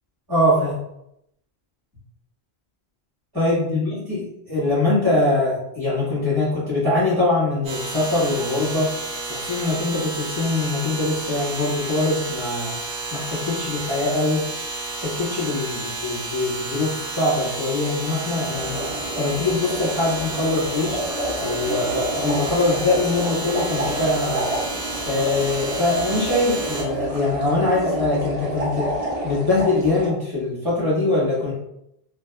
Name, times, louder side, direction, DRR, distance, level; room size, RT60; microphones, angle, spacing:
voice 1, 0.3-0.7 3.3-8.9 9.3-12.8 13.1-14.4 15.0-18.8 19.2-21.0 21.4-24.4 25.0-28.9 29.2-31.5, left 2 dB, 20° right, -8 dB, 1.2 m, -23 dB
sound 1, 7.6-26.8, right 2 dB, 65° right, 0.9 m, -31 dB
sound 2, 18.5-30.1, right 1 dB, 40° right, 0.7 m, -29 dB
2.7 x 2.3 x 2.3 m, 0.80 s
omnidirectional pair, 1.1 m